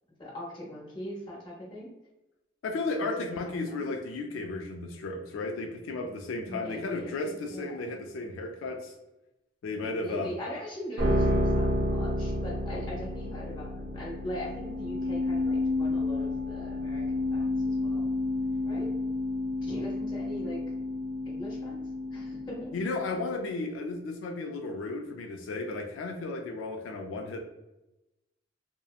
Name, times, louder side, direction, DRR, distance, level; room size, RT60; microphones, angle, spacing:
voice 1, 0.2-1.9 3.0-3.9 6.5-8.0 10.0-18.1 18.6-18.9 19.6-20.6 21.3-21.8 22.1-22.7, equal, 25° left, -5 dB, 0.9 m, -40 dB
voice 2, 2.6-8.9 9.6-10.3 22.7-27.4, left 3 dB, 90° left, 3 dB, 0.3 m, -34 dB
sound 1, 11.0-23.3, left 1 dB, 80° right, 0.6 m, -30 dB
2.7 x 2.0 x 2.3 m, 0.98 s
head